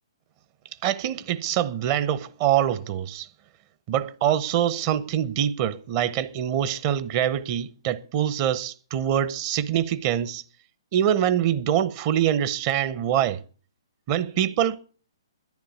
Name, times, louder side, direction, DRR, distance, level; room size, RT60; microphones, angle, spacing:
voice 1, 0.8-3.3 3.9-10.4 10.9-13.4 14.1-14.8, right 10 dB, 35° right, 1.0 m, -24 dB
10.5 x 10.0 x 8.4 m
figure-of-eight pair, 125°, 3 cm